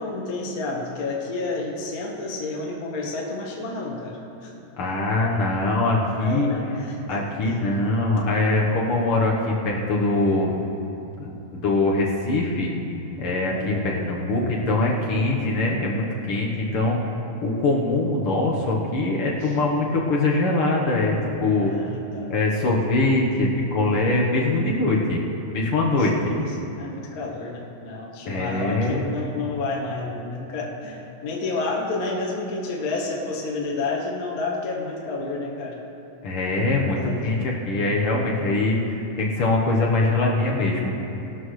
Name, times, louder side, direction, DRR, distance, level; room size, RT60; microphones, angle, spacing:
voice 1, 0.0-4.2 4.4-4.5 6.2-7.6 13.5-14.1 19.4-19.6 21.6-22.3 26.0-26.4 26.8-35.8 36.7-37.2, left 3 dB, 75° left, -2 dB, 0.8 m, -30 dB
voice 2, 4.8-6.5 7.1-10.6 11.2-12.7 13.2-17.0 17.4-21.7 22.3-25.2 25.5-26.4 28.3-29.0 36.2-40.9, left 2 dB, 60° left, -2 dB, 1.6 m, -23 dB
18.5 x 12.0 x 3.2 m, 2.9 s
omnidirectional pair, 3.9 m